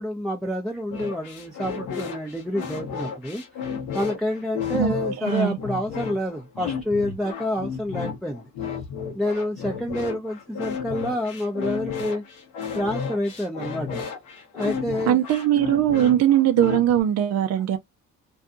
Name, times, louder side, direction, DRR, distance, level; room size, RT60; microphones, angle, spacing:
voice 1, 0.0-3.4 3.9-8.4 9.1-12.2 12.7-14.1 14.5-15.2, left 1 dB, ahead, 0.6 m, -28 dB
sound 1, 0.9-17.0, left 6 dB, 85° left, 1.0 m, -33 dB
voice 2, 4.7-5.6 15.1-17.8, right 11 dB, 55° right, 0.4 m, -20 dB
2.7 x 2.2 x 2.5 m
cardioid pair, 80°, 32 cm